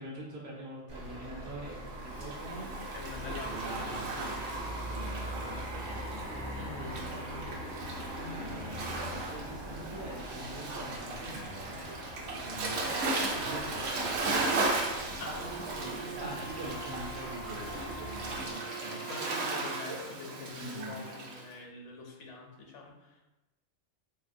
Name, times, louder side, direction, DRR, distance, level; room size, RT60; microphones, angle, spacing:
voice 1, 0.0-2.7 3.5-4.4 4.9-6.8 8.2-11.9 12.2-12.9 13.2-14.5 15.7-19.0 20.5-21.1, right 1 dB, 80° right, -4 dB, 1.1 m, -44 dB
sound 1, 0.9-18.5, right 1 dB, 35° right, 0.4 m, -42 dB
Waves surf, 2.0-21.4, right 3 dB, 65° right, 0.7 m, -37 dB
voice 2, 2.6-4.4 6.5-7.1 15.2-15.9 19.1-23.2, left 4 dB, 70° left, 0 dB, 0.9 m, -45 dB
Wind instrument woodwind instrument, 15.3-19.9, right 3 dB, 50° left, 0.4 m, -45 dB
3.3 x 2.7 x 2.5 m, 1.0 s
omnidirectional pair, 1.4 m